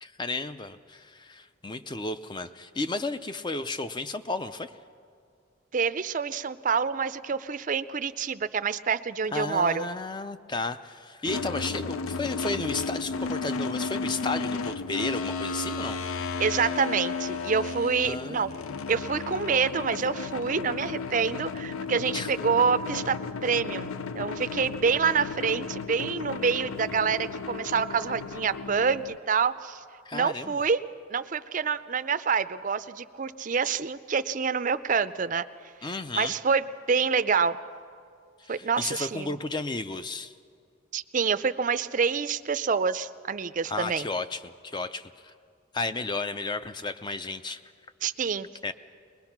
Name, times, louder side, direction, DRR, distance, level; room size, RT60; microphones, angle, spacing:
voice 1, 0.0-4.7 9.3-16.0 18.0-18.5 22.1-22.3 30.1-30.6 35.8-36.3 38.4-40.3 43.6-45.3 45.7-47.6 48.6-48.7, left 3 dB, 20° left, 11 dB, 0.5 m, -33 dB
voice 2, 5.7-9.9 16.4-18.5 18.9-23.2 23.4-23.9 24.1-29.8 30.1-30.8 31.1-35.5 36.2-37.6 38.5-39.3 40.9-44.1 48.0-48.5, right 6 dB, 40° right, 12 dB, 0.4 m, -27 dB
sound 1, 11.3-29.2, left 4 dB, 80° left, 0.5 m, -34 dB
21.0 x 21.0 x 5.9 m, 2.3 s
head